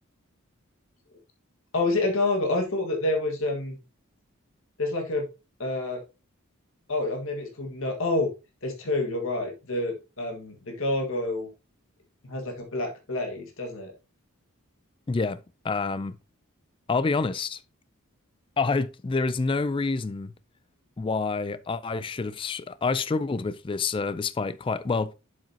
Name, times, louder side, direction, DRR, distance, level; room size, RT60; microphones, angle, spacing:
voice 1, 1.7-3.8 4.8-5.3 5.6-6.0 6.9-8.3 8.6-11.5 12.2-13.9, left 2 dB, 65° left, 1.6 m, -28 dB
voice 2, 15.1-16.2 16.9-17.6 18.6-20.3 21.0-25.1, left 4 dB, 25° left, 0.3 m, -27 dB
7.6 x 7.4 x 2.7 m
head